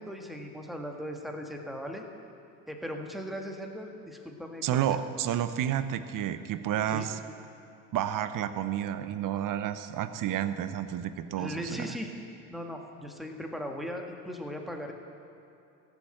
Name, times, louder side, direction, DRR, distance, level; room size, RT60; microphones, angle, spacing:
voice 1, 0.0-2.0 2.7-4.8 6.9-7.1 11.4-12.1 12.5-14.9, equal, ahead, 2 dB, 1.7 m, -38 dB
voice 2, 4.6-7.2 7.9-12.0, right 10 dB, 40° right, 12 dB, 0.9 m, -30 dB
16.0 x 7.4 x 7.8 m, 2.7 s
hypercardioid pair, 80°, 47 cm